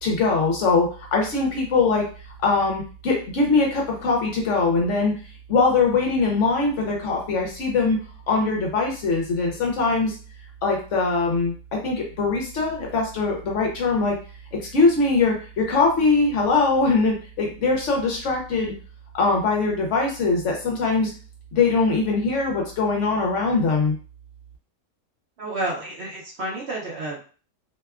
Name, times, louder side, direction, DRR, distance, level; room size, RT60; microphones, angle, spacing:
voice 1, 0.0-2.1 2.4-5.1 5.5-8.0 8.3-10.2 10.6-14.2 14.7-18.7 19.1-21.1 21.5-23.9, left 3 dB, 65° left, 0 dB, 0.9 m, -22 dB
voice 2, 25.4-27.3, right 2 dB, 60° right, -4 dB, 0.8 m, -30 dB
2.8 x 2.2 x 2.3 m, 0.39 s
omnidirectional pair, 1.5 m